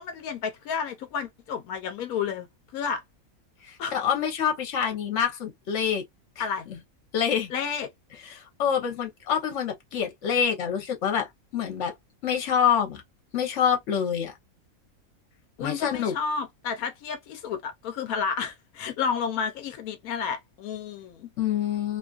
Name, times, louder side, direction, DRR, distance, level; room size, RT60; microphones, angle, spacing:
voice 1, 0.0-2.5 2.7-3.0 3.8-3.9 6.4-6.6 7.5-7.9 15.6-21.3, left 6 dB, 85° left, 1.1 m, -31 dB
voice 2, 3.7-6.0 6.4-6.5 6.7-6.8 7.1-7.5 8.3-11.9 12.2-13.0 13.3-14.3 15.6-16.2 21.4-22.0, left 8 dB, 60° left, 1.1 m, -26 dB
2.8 x 2.4 x 2.3 m
omnidirectional pair, 1.5 m